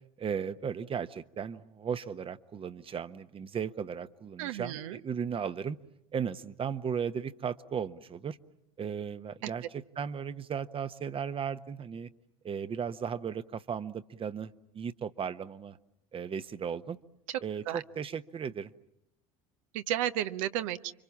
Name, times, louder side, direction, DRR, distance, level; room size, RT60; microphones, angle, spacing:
voice 1, 0.2-5.8 6.1-8.4 8.8-12.1 12.4-15.8 16.1-17.0 17.4-18.7, right 7 dB, 30° right, 13 dB, 1.0 m, -36 dB
voice 2, 4.4-5.0 9.4-9.5 17.7-17.8 19.7-20.9, right 12 dB, 65° right, 11 dB, 1.0 m, -33 dB
30.0 x 24.5 x 7.2 m, 0.80 s
hypercardioid pair, 70°, 18 cm